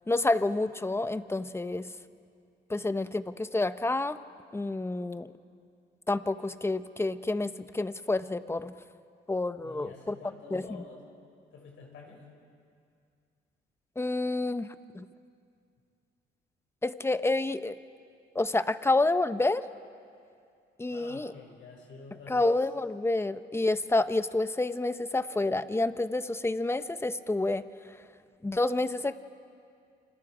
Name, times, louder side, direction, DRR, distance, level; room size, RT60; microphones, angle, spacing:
voice 1, 0.1-1.8 2.7-4.2 4.5-5.3 6.1-8.7 9.3-10.2 10.5-10.6 14.0-14.7 14.9-15.0 16.8-17.8 18.3-19.7 20.8-21.3 22.3-27.7 28.4-29.2, left 2 dB, 10° left, 12 dB, 0.8 m, -28 dB
voice 2, 9.6-11.0 11.5-12.2 20.9-22.5, left 4 dB, 75° left, -1 dB, 6.4 m, -48 dB
29.0 x 26.0 x 5.0 m, 2.3 s
cardioid pair, 90°, 20 cm